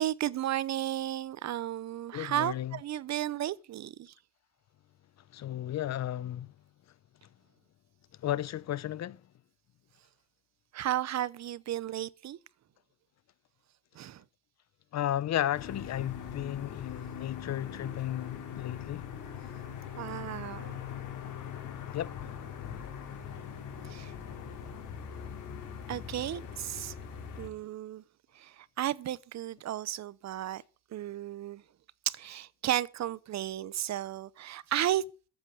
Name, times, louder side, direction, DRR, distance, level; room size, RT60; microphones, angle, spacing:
voice 1, 0.0-4.1 10.7-12.4 13.9-14.2 20.0-20.8 23.4-23.5 23.8-24.1 25.9-26.9 27.4-28.0 28.3-30.6 30.9-31.6 32.1-35.0, right 12 dB, 65° right, 0.8 m, -34 dB
voice 2, 2.1-2.8 5.3-6.5 8.2-9.2 14.9-19.0 21.9-22.3, left 12 dB, 60° left, 0.8 m, -34 dB
sound 1, 15.5-27.5, left 8 dB, 80° left, 4.0 m, -41 dB
13.5 x 8.2 x 8.0 m
cardioid pair, 90°, 30 cm